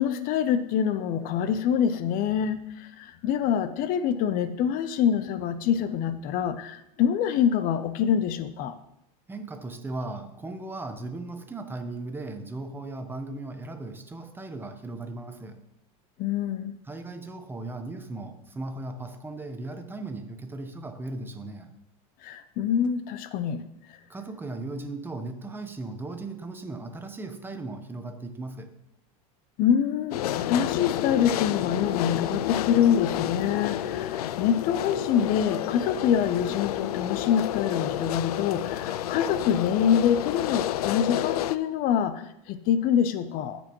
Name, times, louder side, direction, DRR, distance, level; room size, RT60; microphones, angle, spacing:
voice 1, 0.0-8.7 16.2-16.7 22.2-23.6 29.6-43.6, left 8 dB, 50° left, 12 dB, 0.6 m, -25 dB
voice 2, 9.3-15.6 16.9-21.7 24.1-28.7, right 2 dB, 10° right, 6 dB, 1.0 m, -37 dB
Delivery Truck Idling Pedicab passing by in French Quarter, 30.1-41.6, left 12 dB, 90° left, 0.4 m, -30 dB
14.5 x 5.3 x 3.1 m, 0.82 s
supercardioid pair, 110°, 19 cm